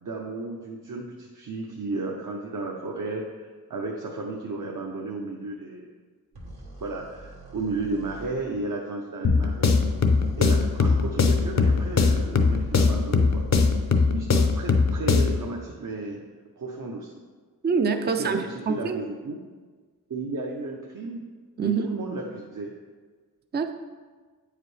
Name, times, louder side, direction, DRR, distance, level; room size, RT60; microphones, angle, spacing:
voice 1, 0.0-5.9 6.8-9.8 10.4-13.4 14.0-16.2 16.6-17.2 18.2-19.4 20.1-21.2 21.6-22.7, right 3 dB, 60° right, -1 dB, 0.7 m, -33 dB
sound 1, 6.3-8.4 9.8-14.2, right 4 dB, 90° right, 1.3 m, -42 dB
sound 2, 9.2-15.5, left 4 dB, 45° left, 0.6 m, -21 dB
voice 2, 17.6-19.0 21.6-21.9 23.5-23.7, right 5 dB, 30° right, 7 dB, 0.4 m, -25 dB
8.3 x 4.9 x 3.2 m, 1.4 s
wide cardioid pair, 95°, 37 cm